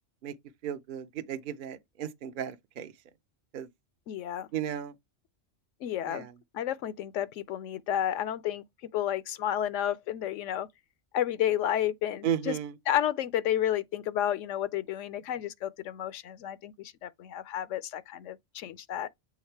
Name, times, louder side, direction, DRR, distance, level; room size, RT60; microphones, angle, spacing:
voice 1, 0.6-2.9 3.5-3.7 4.5-4.9 6.1-6.3 12.2-12.7, right 10 dB, 55° right, 0.7 m, -34 dB
voice 2, 4.1-4.5 5.8-6.3 6.5-8.6 8.9-10.7 11.1-12.6 12.9-19.1, left 11 dB, 80° left, 0.9 m, -31 dB
7.2 x 3.6 x 4.5 m
omnidirectional pair, 1.3 m